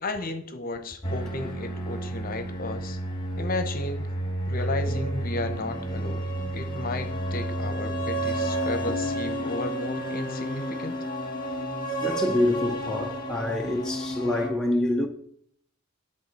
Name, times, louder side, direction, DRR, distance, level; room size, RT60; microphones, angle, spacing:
voice 1, 0.0-3.0 3.4-4.1 4.5-6.2 6.5-11.0, left 2 dB, 45° left, 0.9 m, -33 dB
sound 1, 1.0-14.5, right 1 dB, 20° left, 1.6 m, -31 dB
voice 2, 12.0-15.1, left 1 dB, 5° left, 0.6 m, -26 dB
10.5 x 3.7 x 6.0 m
head